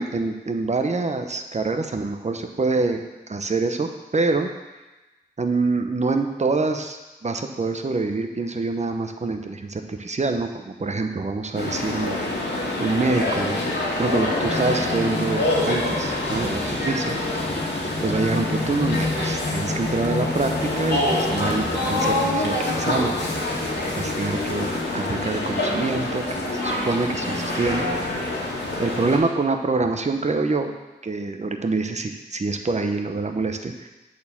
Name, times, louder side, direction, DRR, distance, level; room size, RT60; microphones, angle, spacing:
voice 1, 0.0-4.5 5.4-12.5 12.8-13.6 14.0-17.2 18.0-23.2 24.0-28.2 28.8-30.7 31.0-33.9, right 3 dB, 40° right, 5 dB, 0.9 m, -26 dB
sound 1, 11.6-29.2, left 1 dB, 75° left, 2.0 m, -26 dB
sound 2, 14.4-24.9, left 2 dB, 35° left, 1.1 m, -31 dB
8.5 x 4.3 x 7.1 m, 1.1 s
cardioid pair, 50°, 18 cm